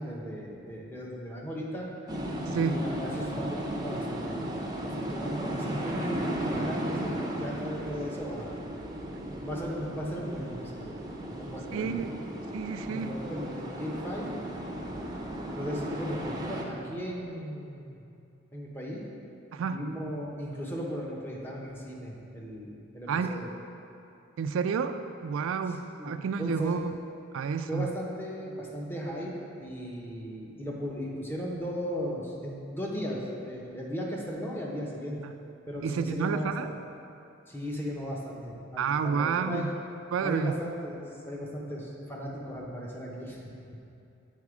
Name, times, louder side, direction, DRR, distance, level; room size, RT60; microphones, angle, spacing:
voice 1, 0.0-1.9 2.5-4.4 4.8-8.6 9.4-11.0 11.3-12.2 12.9-14.3 15.5-18.0 18.5-19.0 19.6-23.5 26.0-26.8 27.7-29.3 29.6-35.2 35.7-36.7 37.5-39.7 40.2-43.4, equal, 10° left, -3 dB, 0.8 m, -37 dB
sound 1, 2.1-16.6, right 1 dB, 20° right, 0.6 m, -35 dB
voice 2, 2.5-2.8 11.7-12.1 12.5-13.2 19.5-19.8 23.1-23.4 24.4-26.9 27.3-27.9 35.2-35.3 35.8-36.7 38.8-39.7 40.1-40.5, right 6 dB, 75° right, 9 dB, 0.3 m, -30 dB
8.3 x 4.1 x 4.9 m, 2.6 s
head